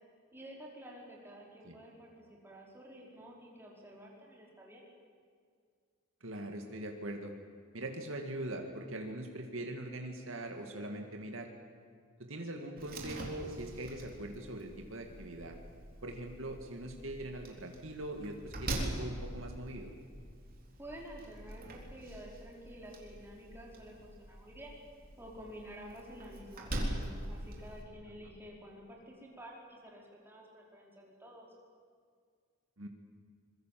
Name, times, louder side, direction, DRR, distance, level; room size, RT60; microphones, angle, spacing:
voice 1, 0.3-4.9 20.8-24.8 25.2-31.5, equal, 10° right, -2 dB, 4.9 m, -50 dB
voice 2, 6.2-7.3 7.7-11.5 12.3-15.6 16.0-19.9 32.8-32.9, right 1 dB, 65° right, 3 dB, 2.3 m, -42 dB
Slam, 12.8-27.8, right 1 dB, 45° right, 3.9 m, -43 dB
25.0 x 22.5 x 7.8 m, 2.1 s
head